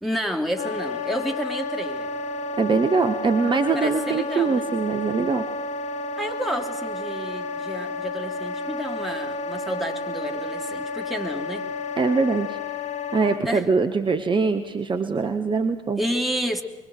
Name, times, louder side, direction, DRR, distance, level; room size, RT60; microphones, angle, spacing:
voice 1, 0.0-2.1 3.7-4.6 6.2-11.7 13.4-13.7 16.0-16.6, equal, ahead, 2 dB, 3.1 m, -30 dB
Wind instrument woodwind instrument, 0.6-13.4, left 3 dB, 45° left, 1.4 m, -31 dB
voice 2, 2.6-5.4 12.0-12.6 13.1-16.0, right 4 dB, 30° right, 7 dB, 1.4 m, -23 dB
23.0 x 22.5 x 7.9 m, 1.1 s
figure-of-eight pair, 45°, 16 cm